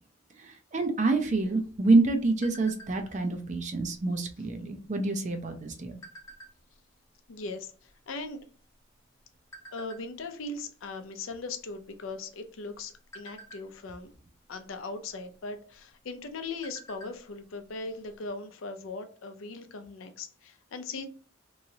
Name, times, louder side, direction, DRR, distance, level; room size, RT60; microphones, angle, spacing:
voice 1, 0.4-6.0, right 3 dB, 35° right, 0.5 m, -27 dB
sound 1, 2.4-3.2 3.7-4.0 4.2-4.6 5.3-6.9 7.5-7.6 7.8-9.0 9.5-10.0 10.5-10.8 11.1-11.3 11.8-12.3 12.7-14.1 15.2-15.3 15.8-15.9 16.2-17.3 17.6-17.7 18.0-18.1, right 1 dB, 15° left, 0.6 m, -49 dB
voice 2, 7.3-8.4 9.7-14.1 14.5-21.1, left 3 dB, 80° left, 0.5 m, -39 dB
3.0 x 2.8 x 2.7 m
head